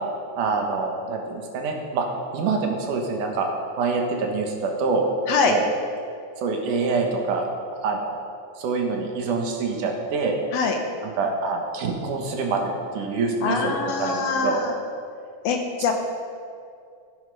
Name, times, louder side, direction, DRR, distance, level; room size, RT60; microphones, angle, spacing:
voice 1, 0.4-2.1 2.3-3.5 3.8-5.1 5.5-5.6 6.4-7.5 7.8-8.2 8.6-10.4 11.0-14.6, right 4 dB, 85° right, 2 dB, 2.9 m, -25 dB
voice 2, 13.4-14.8 15.4-15.9, left 5 dB, 70° left, 4 dB, 1.9 m, -23 dB
14.5 x 9.1 x 5.4 m, 2.4 s
omnidirectional pair, 3.5 m